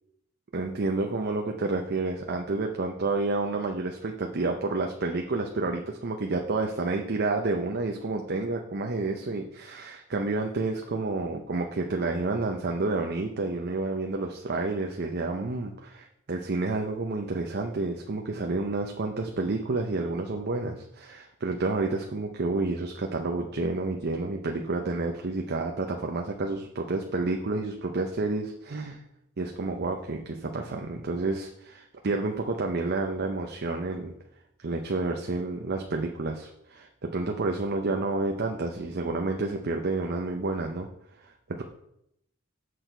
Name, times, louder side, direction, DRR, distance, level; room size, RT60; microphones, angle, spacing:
voice 1, 0.5-29.0 29.4-34.1 34.6-40.9 41.2-41.6, right 3 dB, 50° right, 3 dB, 0.7 m, -30 dB
8.0 x 6.4 x 4.4 m, 0.78 s
head